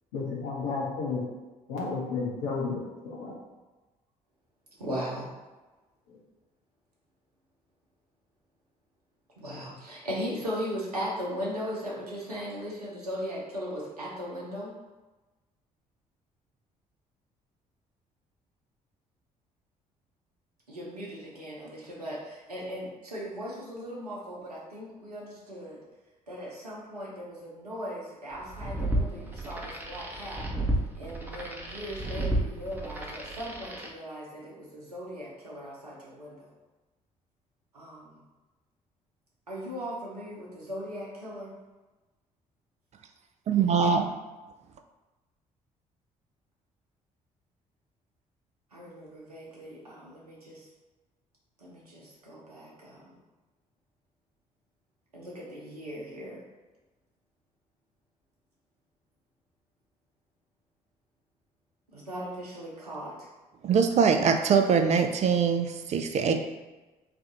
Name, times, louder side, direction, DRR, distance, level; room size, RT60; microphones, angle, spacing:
voice 1, 0.1-1.2 1.7-3.3 6.1-6.2, left 4 dB, 70° left, -4 dB, 1.0 m, -32 dB
voice 2, 4.8-5.3 9.4-14.7 20.7-25.8 26.3-30.4 30.9-36.5 37.7-38.2 39.5-41.5 48.7-50.7 51.6-53.2 55.1-56.4 61.9-63.3, equal, 85° right, -5 dB, 0.8 m, -38 dB
sound 1, 28.4-33.9, right 1 dB, 10° right, 0.8 m, -32 dB
voice 3, 43.5-44.0 63.6-66.3, right 6 dB, 35° right, 6 dB, 0.4 m, -23 dB
3.3 x 2.4 x 3.9 m, 1.2 s
figure-of-eight pair, 45°, 19 cm